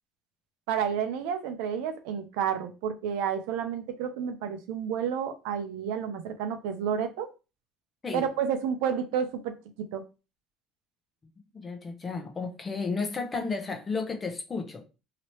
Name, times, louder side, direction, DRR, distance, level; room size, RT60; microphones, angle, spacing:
voice 1, 0.7-7.3 8.1-9.5 9.9-10.0, right 8 dB, 85° right, 0.5 m, -30 dB
voice 2, 11.5-14.8, left 4 dB, 20° left, 0.7 m, -33 dB
2.9 x 2.9 x 3.1 m
cardioid pair, 140°, 0 cm